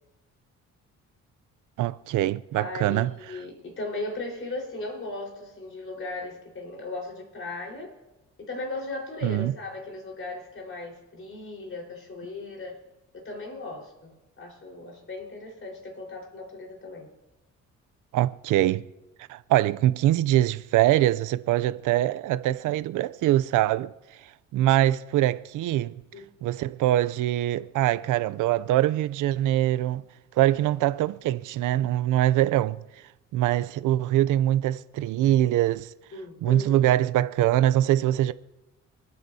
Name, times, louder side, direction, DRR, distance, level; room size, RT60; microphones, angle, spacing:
voice 1, 1.8-3.1 9.2-9.5 18.1-18.8 19.3-23.9 24.5-26.0 26.4-30.0 30.4-32.8 33.3-35.9 36.4-38.3, right 13 dB, 85° right, 0.6 m, -23 dB
voice 2, 2.5-7.9 8.4-12.7 13.1-17.1 26.1-26.3 36.1-36.9, left 2 dB, 45° left, 4.6 m, -37 dB
29.0 x 9.8 x 2.8 m
cardioid pair, 90°, 30 cm